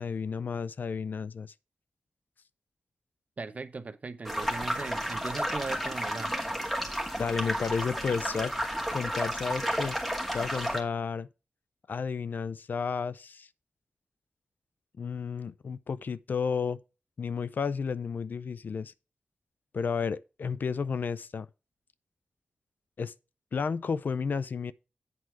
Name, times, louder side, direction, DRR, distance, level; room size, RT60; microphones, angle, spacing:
voice 1, 0.0-1.5 7.2-8.5 8.9-10.0 10.3-11.3 11.9-13.5 15.0-16.8 17.2-18.9 19.7-21.5 23.0-23.1 23.5-24.7, left 5 dB, 65° left, 0.4 m, -32 dB
voice 2, 3.4-6.3, right 4 dB, 45° right, 0.8 m, -38 dB
sound 1, 4.2-10.8, equal, 5° left, 2.2 m, -32 dB
8.3 x 4.6 x 5.8 m
wide cardioid pair, 70°, 3 cm